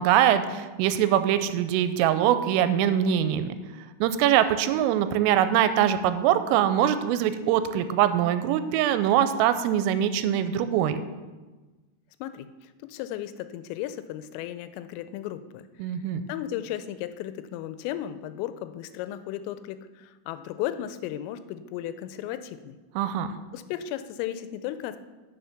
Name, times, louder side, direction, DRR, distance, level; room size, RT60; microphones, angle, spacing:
voice 1, 0.0-3.5 4.0-11.0 15.8-16.2 23.0-23.4, right 10 dB, 85° right, 11 dB, 3.2 m, -23 dB
voice 2, 12.2-15.6 16.0-16.1 16.3-22.8 23.5-25.0, left 12 dB, 85° left, 12 dB, 3.2 m, -35 dB
9.4 x 6.8 x 5.8 m, 1.2 s
omnidirectional pair, 5.8 m